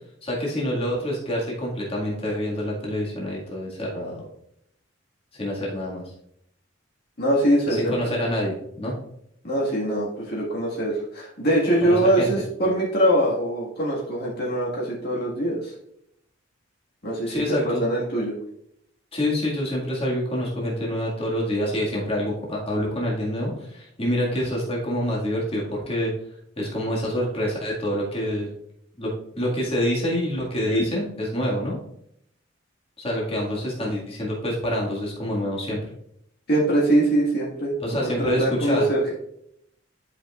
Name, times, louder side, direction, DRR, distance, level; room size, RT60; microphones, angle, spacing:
voice 1, 0.2-4.2 5.3-6.0 7.7-9.0 11.8-12.3 17.3-17.8 19.1-26.1 26.6-28.5 29.0-31.8 33.0-35.8 37.8-38.8, equal, 30° left, -4 dB, 2.0 m, -26 dB
voice 2, 7.2-7.9 9.4-15.7 17.0-17.4 17.6-18.3 36.5-39.1, right 1 dB, 55° left, -5 dB, 1.8 m, -23 dB
11.0 x 5.3 x 2.4 m, 0.74 s
head